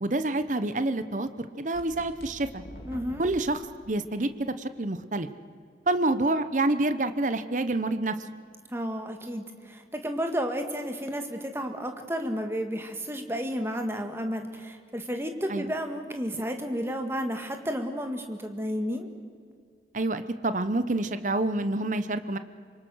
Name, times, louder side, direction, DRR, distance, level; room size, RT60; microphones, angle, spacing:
voice 1, 0.0-2.6 3.2-3.6 3.9-5.3 5.9-8.2 15.5-15.7 19.9-22.4, right 2 dB, 45° right, 11 dB, 0.9 m, -27 dB
sound 1, 1.7-3.4, equal, 55° left, 3.1 m, -44 dB
voice 2, 2.9-3.3 8.7-19.1, equal, 15° right, 5 dB, 1.9 m, -32 dB
26.5 x 24.0 x 6.4 m, 2.2 s
head